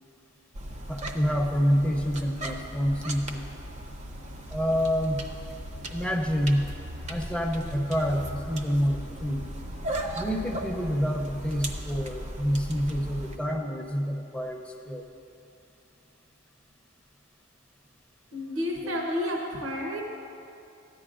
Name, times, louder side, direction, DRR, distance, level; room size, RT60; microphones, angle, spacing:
sound 1, 0.5-13.4, right 1 dB, 35° right, 0.6 m, -37 dB
voice 1, 0.9-3.4 4.5-5.2 5.9-6.7 7.1-9.5 10.2-15.1 18.8-18.9, equal, 5° left, 1 dB, 0.6 m, -27 dB
voice 2, 18.3-20.0, left 1 dB, 75° right, 0 dB, 0.9 m, -30 dB
14.0 x 10.0 x 2.5 m, 2.7 s
head